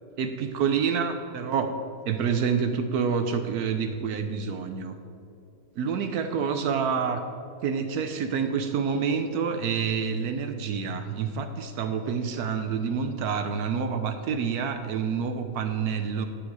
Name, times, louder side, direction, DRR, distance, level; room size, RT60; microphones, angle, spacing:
voice 1, 0.2-1.7 2.1-5.0 5.8-7.2 7.6-16.3, right 6 dB, 80° right, 7 dB, 0.8 m, -27 dB
12.0 x 8.2 x 4.8 m, 2.7 s
omnidirectional pair, 2.4 m